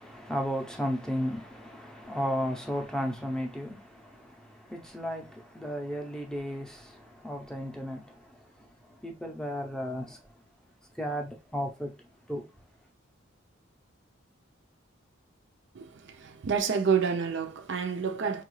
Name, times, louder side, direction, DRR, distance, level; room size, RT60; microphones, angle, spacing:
voice 1, 0.0-10.3 10.9-12.5, equal, 5° left, 0.6 m, -35 dB
voice 2, 15.8-18.4, right 6 dB, 60° right, 0.5 m, -29 dB
4.7 x 2.3 x 3.1 m
head